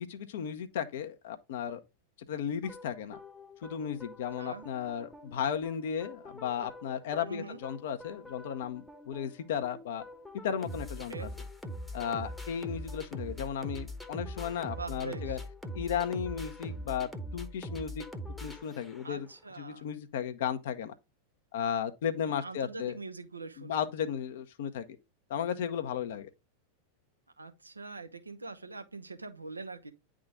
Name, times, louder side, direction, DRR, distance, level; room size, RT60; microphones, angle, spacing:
voice 1, 0.1-1.8 2.3-3.2 3.6-10.0 10.4-11.1 11.9-15.4 15.7-18.0 18.4-19.3 19.6-20.9 21.5-22.9 23.6-24.9 25.3-26.3, left 8 dB, 55° left, 0.8 m, -35 dB
sound 1, 2.6-19.3, equal, 5° left, 1.0 m, -43 dB
voice 2, 7.3-7.6 11.1-11.3 14.8-15.4 19.0-19.9 22.2-23.9 27.4-29.9, right 4 dB, 80° right, 0.9 m, -43 dB
9.6 x 3.8 x 3.5 m
figure-of-eight pair, 90°, 0 cm